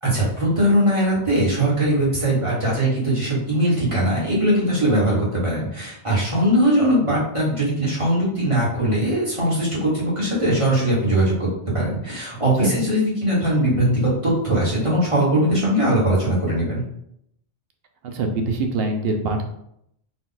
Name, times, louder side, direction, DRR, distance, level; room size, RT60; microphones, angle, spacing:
voice 1, 0.0-11.5 11.7-16.8, right 1 dB, 30° right, -6 dB, 1.4 m, -20 dB
voice 2, 18.0-19.4, right 3 dB, 65° right, 4 dB, 0.8 m, -24 dB
4.1 x 2.3 x 3.9 m, 0.74 s
omnidirectional pair, 1.1 m